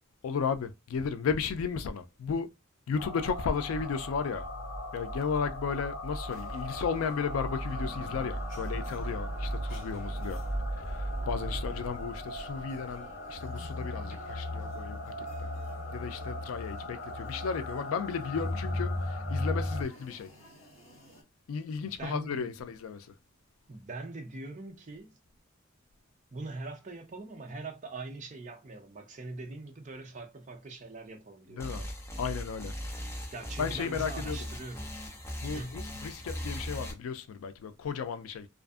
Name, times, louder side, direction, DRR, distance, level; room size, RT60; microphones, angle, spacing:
voice 1, 0.2-2.5 2.9-4.5 4.9-10.4 10.8-15.1 15.4-15.5 15.9-20.3 21.5-23.1 31.5-31.8 32.2-32.7 33.6-34.4 35.4-38.5, left 6 dB, 85° left, 0.4 m, -34 dB
sound 1, 3.0-19.8, left 1 dB, 65° left, 0.9 m, -36 dB
sound 2, 6.3-21.2, right 1 dB, 35° left, 1.2 m, -55 dB
voice 2, 21.8-22.7 23.7-25.2 26.3-31.9 33.3-34.9 35.5-35.8, right 3 dB, 35° right, 0.5 m, -42 dB
sound 3, 31.6-36.9, equal, 10° left, 0.6 m, -39 dB
2.5 x 2.4 x 2.3 m
head